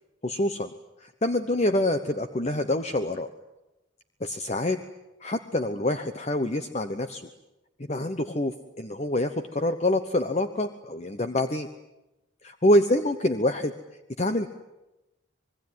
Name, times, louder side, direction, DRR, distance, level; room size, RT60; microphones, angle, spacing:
voice 1, 0.2-0.7 1.0-3.3 4.2-4.8 5.2-7.3 7.9-11.7 12.4-13.7 14.2-14.5, left 1 dB, 35° left, 9 dB, 1.0 m, -26 dB
26.0 x 22.0 x 9.4 m, 0.96 s
head